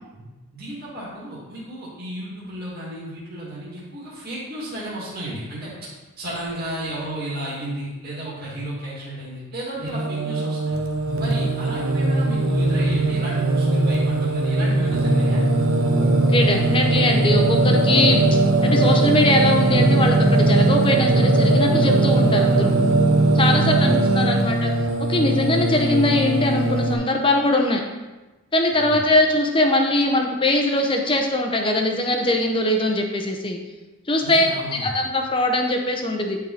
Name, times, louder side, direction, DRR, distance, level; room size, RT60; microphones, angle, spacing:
voice 1, 0.5-5.9 6.2-10.8 11.2-15.4 23.5-24.4 28.7-29.0 34.2-35.0, right 1 dB, 45° right, -7 dB, 2.4 m, -33 dB
Singing, 9.8-26.9, right 2 dB, 70° right, 1.0 m, -19 dB
voice 2, 16.1-18.2 18.6-22.7 23.3-24.7 25.1-27.8 28.5-33.6 34.1-36.4, left 1 dB, 25° left, 3 dB, 0.8 m, -21 dB
10.0 x 4.8 x 4.1 m, 1.1 s
head